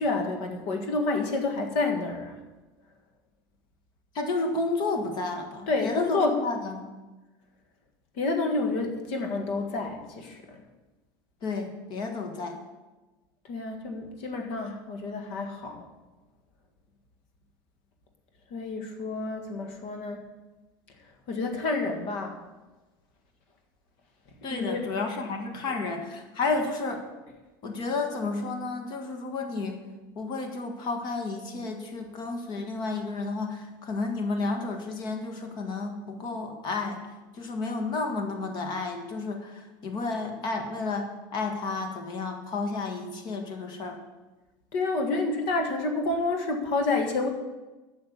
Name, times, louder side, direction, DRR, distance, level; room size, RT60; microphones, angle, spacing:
voice 1, 0.0-2.3 5.7-6.4 8.1-10.6 13.4-15.8 18.5-20.2 21.3-22.4 24.5-24.8 44.7-47.3, left 3 dB, 60° left, 4 dB, 1.7 m, -29 dB
voice 2, 4.1-6.8 11.4-12.6 24.4-27.0 27.6-29.8 30.1-37.0 37.3-44.0, left 3 dB, 40° left, 5 dB, 1.7 m, -31 dB
8.6 x 6.8 x 8.5 m, 1.2 s
cardioid pair, 150°, 11 cm